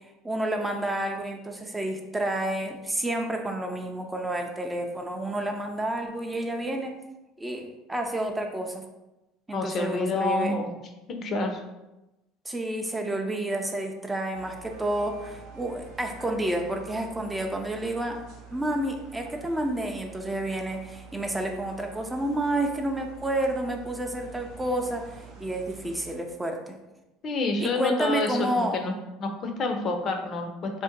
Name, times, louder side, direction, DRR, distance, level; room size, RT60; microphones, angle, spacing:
voice 1, 0.2-6.9 7.4-8.8 9.5-10.6 12.5-18.2 18.5-26.8 27.6-28.8, right 1 dB, 15° right, 3 dB, 0.4 m, -30 dB
voice 2, 9.5-10.7 11.1-11.6 27.2-28.9 29.2-30.8, left 3 dB, 45° left, 4 dB, 0.5 m, -28 dB
sound 1, 14.3-26.1, right 6 dB, 80° right, 0.7 m, -47 dB
2.6 x 2.1 x 3.8 m, 0.99 s
supercardioid pair, 95°, 0 cm